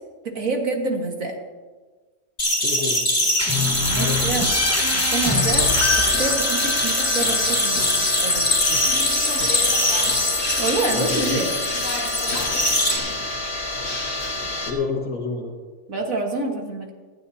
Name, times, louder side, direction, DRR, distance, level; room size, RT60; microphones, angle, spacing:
voice 1, 0.2-1.4 3.9-4.5 4.9-5.7 6.0-8.5 10.6-11.5 15.9-16.9, right 3 dB, 65° right, 2 dB, 2.0 m, -27 dB
sound 1, 2.4-12.9, left 1 dB, 30° left, 2.1 m, -22 dB
voice 2, 2.6-3.3 3.9-4.4 8.7-8.8 9.4-9.5 10.9-11.5 14.7-15.5, left 4 dB, 75° left, -5 dB, 2.2 m, -29 dB
sound 2, 3.4-8.8, left 2 dB, 10° left, 1.2 m, -27 dB
sound 3, 5.2-14.7, left 2 dB, 50° left, 2.0 m, -28 dB
25.0 x 9.7 x 2.8 m, 1.4 s
omnidirectional pair, 1.5 m